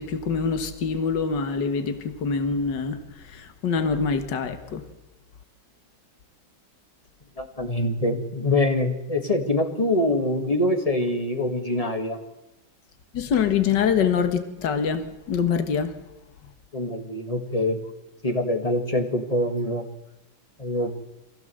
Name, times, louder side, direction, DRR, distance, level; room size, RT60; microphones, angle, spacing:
voice 1, 0.0-4.8 13.1-15.9, left 6 dB, 60° left, 9 dB, 2.1 m, -25 dB
voice 2, 7.4-12.2 16.7-17.8 18.2-19.8 20.6-20.9, left 1 dB, 20° left, 5 dB, 1.8 m, -24 dB
23.5 x 16.0 x 7.8 m, 0.92 s
omnidirectional pair, 2.2 m